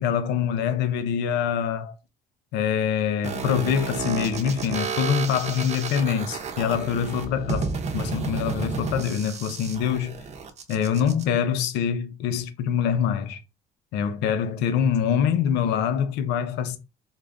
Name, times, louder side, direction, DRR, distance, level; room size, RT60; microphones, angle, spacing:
voice 1, 0.0-1.9 2.5-10.1 10.7-13.4 13.9-16.8, left 8 dB, 90° left, 0.7 m, -25 dB
sound 1, 3.2-11.2, right 4 dB, 40° right, 0.8 m, -31 dB
3.8 x 2.5 x 3.4 m
cardioid pair, 110°, 17 cm